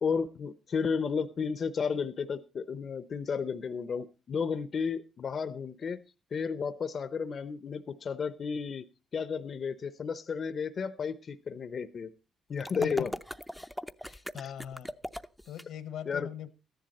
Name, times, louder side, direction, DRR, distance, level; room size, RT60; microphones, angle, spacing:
voice 1, 0.0-6.0 6.3-8.8 9.1-12.1 12.5-13.1 14.4-14.5 16.1-16.3, left 6 dB, 50° left, 0.7 m, -33 dB
sound 1, 12.6-15.6, equal, ahead, 0.6 m, -39 dB
voice 2, 12.8-13.1 14.0-15.0 15.5-16.5, left 10 dB, 80° left, 1.1 m, -40 dB
14.0 x 10.5 x 4.1 m
cardioid pair, 90°, 0 cm